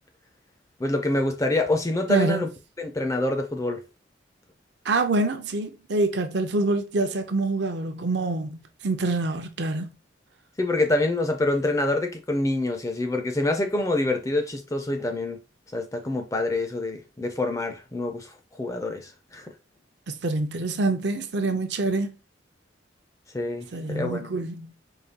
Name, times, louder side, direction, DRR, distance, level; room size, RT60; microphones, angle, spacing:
voice 1, 0.8-2.5 2.8-3.8 10.6-15.4 15.7-19.5 23.3-24.3, left 2 dB, 15° left, 0.4 m, -26 dB
voice 2, 2.1-2.5 4.9-9.9 20.1-22.1 23.7-24.7, right 2 dB, 60° right, 0.5 m, -26 dB
4.8 x 2.3 x 2.7 m
head